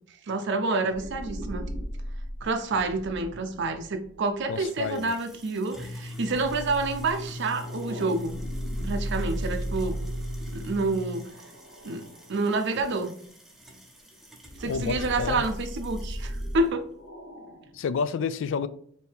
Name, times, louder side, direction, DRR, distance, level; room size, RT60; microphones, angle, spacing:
voice 1, 0.3-1.7 2.4-8.4 8.8-10.0 10.5-11.3 11.8-13.1 14.6-16.9, right 3 dB, 60° right, 7 dB, 0.5 m, -28 dB
sound 1, 0.9-5.1 6.3-12.3 12.8-12.9 14.4-17.9, right 1 dB, 80° left, 0.9 m, -36 dB
voice 2, 4.5-5.1 14.7-15.4 17.7-18.7, left 5 dB, 65° left, 14 dB, 0.3 m, -29 dB
sound 2, 4.6-16.6, left 1 dB, ahead, 0.6 m, -41 dB
4.4 x 2.7 x 3.5 m, 0.62 s
head